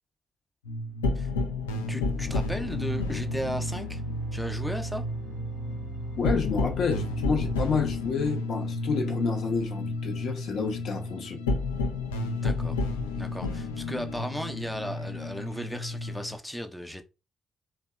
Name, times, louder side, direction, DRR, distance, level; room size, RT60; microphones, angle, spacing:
sound 1, 0.6-16.4, left 2 dB, 85° left, 0.3 m, -31 dB
voice 1, 1.9-4.0 4.3-5.1 12.4-12.8 13.2-17.0, equal, 5° left, 0.4 m, -35 dB
sound 2, 2.2-9.7, left 3 dB, 60° right, 0.5 m, -41 dB
voice 2, 6.2-11.4, left 5 dB, 60° left, 0.7 m, -29 dB
2.7 x 2.1 x 2.3 m
hypercardioid pair, 40°, 0 cm